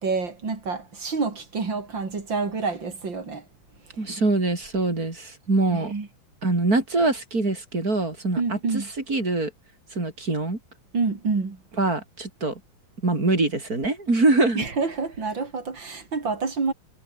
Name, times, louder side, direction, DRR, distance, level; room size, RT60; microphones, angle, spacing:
voice 1, 0.0-3.4 5.7-6.1 8.4-8.9 10.9-11.6 14.6-16.7, right 4 dB, 65° right, 4.4 m, -28 dB
voice 2, 4.0-5.9 6.4-8.6 9.1-9.5 9.9-10.6 11.8-12.6 13.0-14.6, right 2 dB, 45° right, 5.2 m, -23 dB
omnidirectional pair, 2.2 m